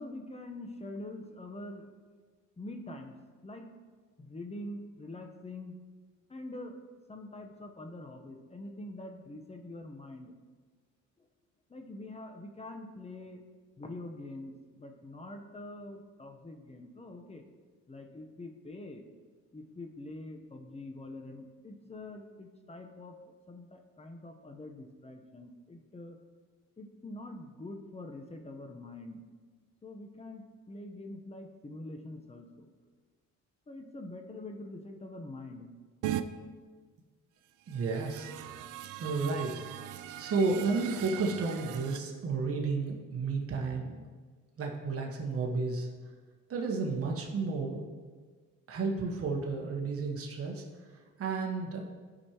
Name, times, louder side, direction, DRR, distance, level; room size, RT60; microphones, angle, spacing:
voice 1, 0.0-1.9 2.6-3.2 3.4-3.7 4.2-5.8 6.3-6.8 7.1-10.3 11.7-13.4 13.8-17.4 17.9-19.0 19.5-23.2 23.5-26.2 26.8-29.2 29.8-32.7 33.7-35.7, left 2 dB, 20° left, 4 dB, 0.9 m, -45 dB
sound 1, 36.0-36.2 37.6-42.0, right 12 dB, 85° right, 0.5 m, -39 dB
voice 2, 37.7-38.3 39.0-39.6 40.0-44.1 44.6-45.9 46.5-47.8 48.7-50.6 51.2-51.9, right 4 dB, 50° right, 0 dB, 1.3 m, -32 dB
12.0 x 5.0 x 3.0 m, 1.5 s
cardioid pair, 90°, 30 cm